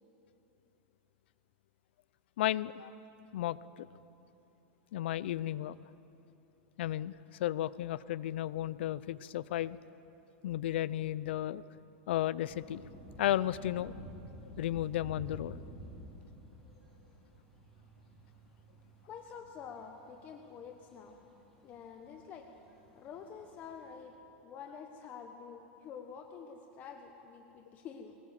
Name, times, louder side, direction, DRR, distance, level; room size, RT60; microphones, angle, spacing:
voice 1, 2.4-2.9 3.3-3.9 4.9-5.8 6.8-7.1 7.4-9.8 10.4-11.6 12.1-12.8 13.2-13.9 14.6-15.6, left 13 dB, 75° left, 19 dB, 0.6 m, -33 dB
sound 1, 12.5-24.0, equal, 5° left, 5.3 m, -52 dB
voice 2, 19.1-21.2 21.6-22.5 22.9-28.2, left 6 dB, 30° left, 4 dB, 1.2 m, -48 dB
22.0 x 18.5 x 7.6 m, 2.9 s
supercardioid pair, 155°, 6 cm